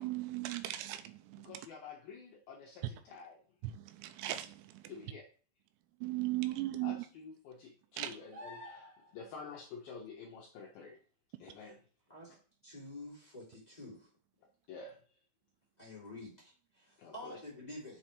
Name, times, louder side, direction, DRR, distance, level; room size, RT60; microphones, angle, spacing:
voice 1, 0.0-1.5 3.6-4.8 6.0-7.0 8.0-8.1, right 16 dB, 80° right, 2.9 m, -37 dB
voice 2, 1.4-3.4 4.9-5.3 6.8-11.0 11.4-11.8 12.3-12.4 14.7-15.0 17.0-17.4, left 5 dB, 75° left, 2.3 m, -49 dB
sound 1, 8.3-9.3 12.8-12.9, left 1 dB, 45° right, 1.7 m, -49 dB
voice 3, 12.6-14.1 15.8-18.0, left 1 dB, 20° left, 1.0 m, -48 dB
6.9 x 4.4 x 4.9 m
omnidirectional pair, 5.3 m